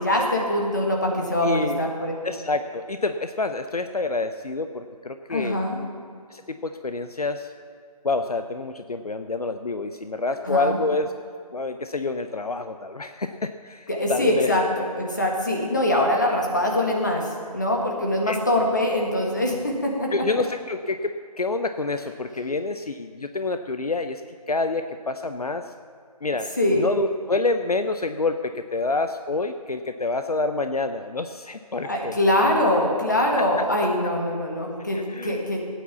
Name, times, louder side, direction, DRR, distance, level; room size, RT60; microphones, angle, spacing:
voice 1, 0.0-2.1 5.3-5.8 10.4-10.8 13.9-17.3 17.5-20.1 26.6-26.8 31.9-35.6, left 1 dB, 30° left, 0 dB, 1.7 m, -23 dB
voice 2, 1.4-1.8 2.2-5.6 6.3-7.5 8.0-11.1 11.5-14.5 18.3-18.4 20.1-24.2 24.5-25.7 26.2-32.1 33.4-33.9 34.9-35.4, left 3 dB, 65° left, 8 dB, 0.7 m, -28 dB
15.5 x 9.2 x 7.1 m, 2.2 s
figure-of-eight pair, 180°, 20 cm